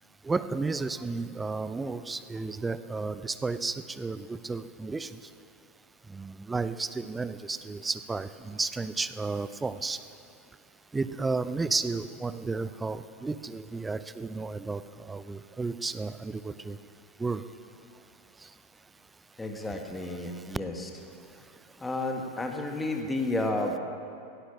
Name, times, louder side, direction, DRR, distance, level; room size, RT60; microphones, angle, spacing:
voice 1, 0.2-5.2 6.1-10.0 10.9-16.8 17.2-17.4 18.4-18.5, right 3 dB, 10° right, 14 dB, 0.5 m, -33 dB
voice 2, 19.4-20.9 21.8-23.8, left 2 dB, 10° left, 3 dB, 1.8 m, -31 dB
17.0 x 11.0 x 7.2 m, 2.6 s
figure-of-eight pair, 90°, 0 cm